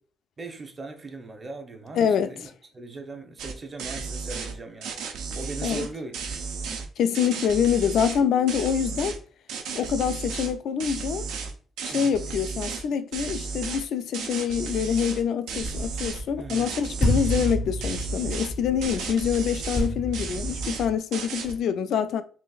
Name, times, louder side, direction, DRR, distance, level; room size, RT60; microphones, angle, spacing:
voice 1, 0.4-2.5 2.7-4.9 5.3-6.2 11.9-12.2 16.4-16.7, right 3 dB, 30° right, 0.7 m, -39 dB
voice 2, 1.9-2.3 5.6-5.9 7.0-9.2 9.7-11.3 11.8-22.2, left 8 dB, 70° left, 0.3 m, -25 dB
sound 1, 3.4-3.5 3.8-4.5 4.8-6.8 7.1-8.2 8.5-9.2 9.5-10.5 10.8-12.8 13.1-13.8 14.1-15.2 15.5-16.2 16.5-17.5 17.8-18.5 18.8-19.9 20.1-20.9 21.1-21.5, right 5 dB, 90° right, 0.4 m, -33 dB
sound 2, 15.6-20.9, equal, ahead, 0.4 m, -30 dB
4.0 x 2.5 x 2.3 m
cardioid pair, 90°, 0 cm